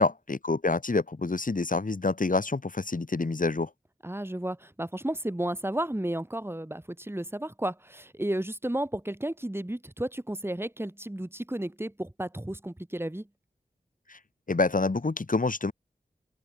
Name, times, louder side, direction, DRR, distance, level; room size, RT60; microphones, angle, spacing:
voice 1, 0.0-3.7 14.1-14.2 14.5-15.7, left 3 dB, 55° left, 1.7 m, -27 dB
voice 2, 4.0-13.3, right 1 dB, 15° right, 1.8 m, -33 dB
open air
wide cardioid pair, 45°, 17 cm